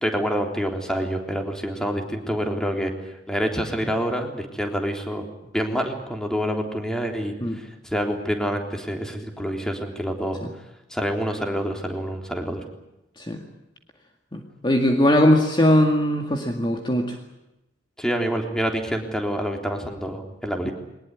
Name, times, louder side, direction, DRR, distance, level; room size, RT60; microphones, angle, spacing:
voice 1, 0.0-2.9 3.3-5.3 5.5-10.4 10.9-12.6 18.0-20.7, equal, 5° left, 3 dB, 3.5 m, -27 dB
voice 2, 14.3-17.2 20.6-20.7, left 1 dB, 25° left, 3 dB, 2.1 m, -20 dB
22.5 x 20.0 x 9.6 m, 0.92 s
head